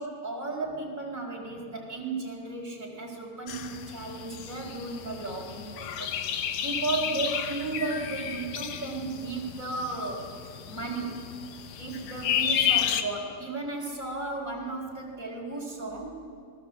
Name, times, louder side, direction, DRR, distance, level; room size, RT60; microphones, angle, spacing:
voice 1, 0.0-10.3 10.7-11.3 11.8-16.2, right 3 dB, 20° right, -1 dB, 4.0 m, -34 dB
sound 1, 3.5-13.0, left 9 dB, 85° left, 1.5 m, -32 dB
27.0 x 21.5 x 7.6 m, 2.2 s
omnidirectional pair, 4.7 m